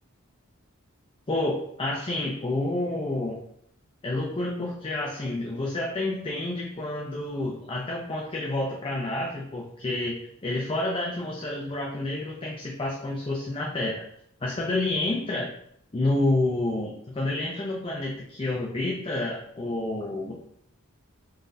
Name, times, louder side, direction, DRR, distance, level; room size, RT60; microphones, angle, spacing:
voice 1, 1.3-3.4 4.0-14.0 14.4-15.5 15.9-20.3, left 2 dB, 25° left, -2 dB, 0.5 m, -29 dB
3.9 x 3.9 x 2.6 m, 0.69 s
head